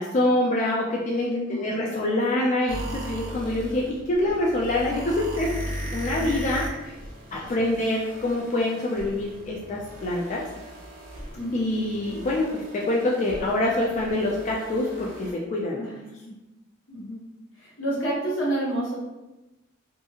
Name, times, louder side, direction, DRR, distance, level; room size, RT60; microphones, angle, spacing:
voice 1, 0.0-7.0 7.3-10.4 11.5-15.8, left 1 dB, 40° left, -3 dB, 0.3 m, -26 dB
voice 2, 1.2-1.9 7.5-7.7 11.3-11.6 15.8-16.3 16.9-17.2 17.6-19.0, right 1 dB, 80° left, -6 dB, 1.1 m, -30 dB
sound 1, 2.7-15.3, equal, 45° right, 0.6 m, -38 dB
2.6 x 2.3 x 2.8 m, 1.0 s
head